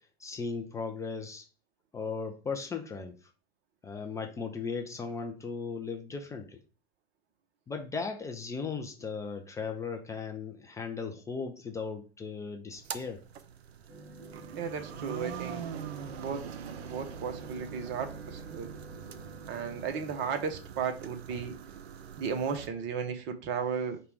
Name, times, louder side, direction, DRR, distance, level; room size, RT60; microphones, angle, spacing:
voice 1, 0.2-1.4 1.9-3.2 3.8-6.6 7.7-13.2, left 5 dB, 10° left, 3 dB, 0.4 m, -37 dB
sound 1, 12.7-22.7, right 8 dB, 80° right, 0.5 m, -43 dB
sound 2, 13.9-20.6, right 1 dB, 10° right, 1.0 m, -50 dB
voice 2, 14.5-15.7 16.1-16.5 16.9-18.7 19.5-21.5 22.2-24.0, right 6 dB, 35° right, 6 dB, 0.9 m, -34 dB
5.0 x 2.3 x 4.6 m, 0.36 s
hypercardioid pair, 105°, 32 cm